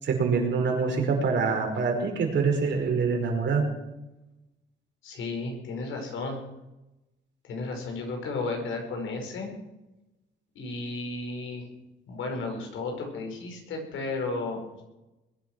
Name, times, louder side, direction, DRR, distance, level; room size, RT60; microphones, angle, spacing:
voice 1, 0.0-3.6, right 5 dB, 65° right, 2 dB, 5.0 m, -25 dB
voice 2, 5.0-6.4 7.4-9.5 10.6-11.7 12.1-14.8, left 3 dB, 80° left, 3 dB, 5.4 m, -33 dB
21.5 x 10.5 x 6.2 m, 0.96 s
cardioid pair, 90°, 20 cm